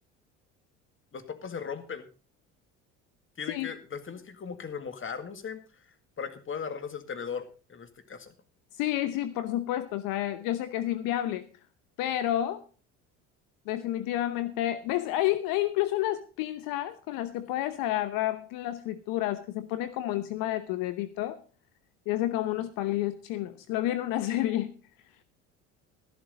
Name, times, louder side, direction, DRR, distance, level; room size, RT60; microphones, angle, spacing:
voice 1, 1.1-2.1 3.4-5.6 6.2-8.3, left 6 dB, 35° left, 9 dB, 2.0 m, -38 dB
voice 2, 8.7-11.5 12.0-12.6 13.7-21.4 22.1-24.7, left 13 dB, 70° left, 12 dB, 0.9 m, -30 dB
13.5 x 11.5 x 4.0 m, 0.36 s
hypercardioid pair, 70°, 35 cm